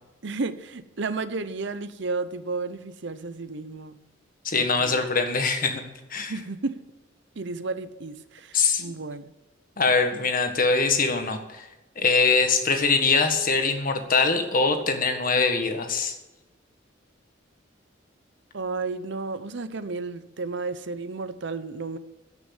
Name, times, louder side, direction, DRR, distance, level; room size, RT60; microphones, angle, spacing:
voice 1, 0.2-4.0 4.5-5.0 6.3-6.8 7.4-9.2 18.5-22.0, right 3 dB, 65° right, 13 dB, 0.8 m, -32 dB
voice 2, 4.4-5.9 6.1-6.3 8.5-8.9 9.8-11.7 12.0-16.1, left 4 dB, 45° left, 6 dB, 1.6 m, -23 dB
14.0 x 6.4 x 9.0 m, 1.0 s
head